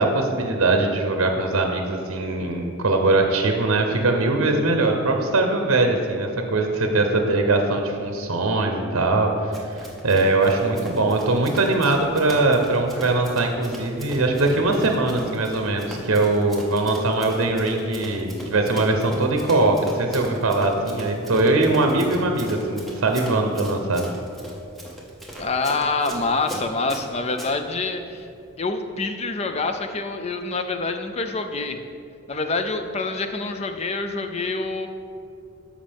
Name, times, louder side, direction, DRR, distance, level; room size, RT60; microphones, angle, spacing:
voice 1, 0.0-24.0, right 2 dB, 65° right, 4 dB, 0.7 m, -21 dB
Run, 9.5-27.5, equal, ahead, 0.8 m, -39 dB
voice 2, 25.4-28.3 28.6-31.8 32.3-34.9, left 3 dB, 30° left, 7 dB, 0.4 m, -26 dB
13.0 x 5.0 x 3.5 m, 2.6 s
head